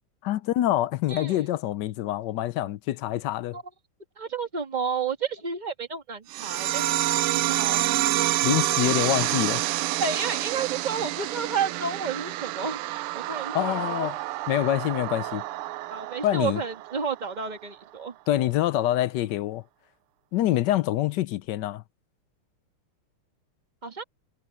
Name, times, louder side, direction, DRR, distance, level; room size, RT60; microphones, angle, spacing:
voice 1, 0.2-3.6 8.4-9.6 13.5-14.2 14.5-15.4 16.2-16.6 18.3-19.6 20.3-21.8, left 13 dB, 75° left, 1.0 m, -26 dB
voice 2, 1.1-1.4 3.5-3.6 4.2-7.0 7.3-7.8 8.4-8.5 10.0-14.1 15.9-18.2 23.8-24.0, right 5 dB, 20° right, 1.8 m, -31 dB
sound 1, 6.3-17.3, right 16 dB, 90° right, 1.5 m, -28 dB
omnidirectional pair, 2.4 m